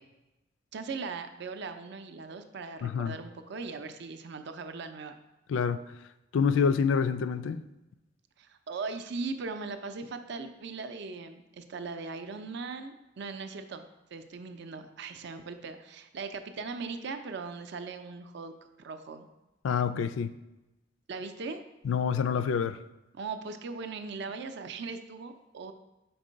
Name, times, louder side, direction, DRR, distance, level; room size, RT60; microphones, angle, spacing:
voice 1, 0.7-5.2 8.4-19.3 21.1-21.6 23.1-25.7, right 4 dB, 65° right, 0.5 m, -39 dB
voice 2, 2.8-3.2 5.5-5.9 6.3-7.6 19.6-20.3 21.8-22.8, left 6 dB, 75° left, 0.3 m, -27 dB
4.7 x 4.4 x 5.1 m
head